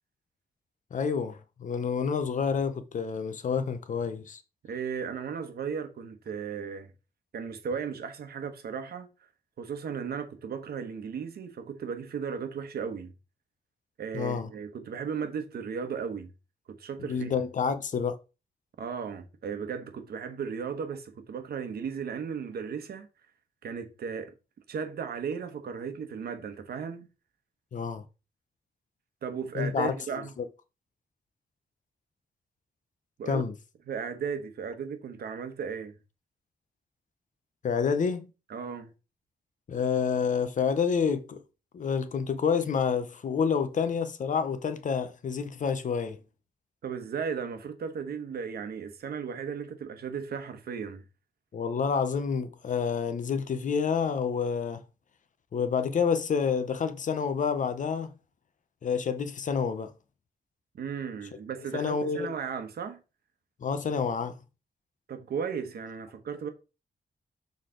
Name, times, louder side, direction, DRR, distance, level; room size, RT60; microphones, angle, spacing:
voice 1, 0.9-4.4 14.1-14.5 17.0-18.2 27.7-28.0 29.6-30.0 30.4-30.5 33.3-33.5 37.6-38.3 39.7-41.4 41.7-46.2 51.5-54.8 55.5-58.1 58.8-59.9 61.7-62.3 63.6-64.3, left 6 dB, 55° left, 0.7 m, -28 dB
voice 2, 4.6-6.9 7.3-9.1 9.6-13.1 14.0-16.3 16.7-17.3 18.8-23.1 23.6-24.3 24.7-27.1 29.2-30.3 33.2-33.4 33.9-35.9 38.5-38.9 46.8-51.0 60.8-63.0 65.1-66.5, right 6 dB, 80° right, 1.1 m, -35 dB
6.6 x 4.0 x 3.8 m
wide cardioid pair, 165°, 16 cm